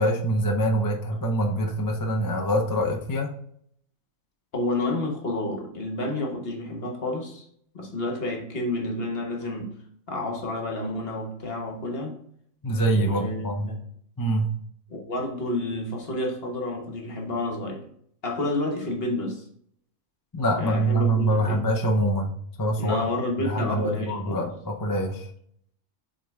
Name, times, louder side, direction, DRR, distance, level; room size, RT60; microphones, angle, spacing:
voice 1, 0.0-3.3 12.6-13.7 14.2-14.5 20.3-23.1 23.4-25.3, right 1 dB, 25° left, 1 dB, 0.4 m, -25 dB
voice 2, 4.5-7.4 7.7-9.7 10.1-12.2 12.9-13.8 14.9-17.8 18.2-19.4 20.6-21.6 22.8-24.4, left 2 dB, 45° left, 2 dB, 1.4 m, -30 dB
7.6 x 3.7 x 3.6 m, 0.65 s
omnidirectional pair, 1.5 m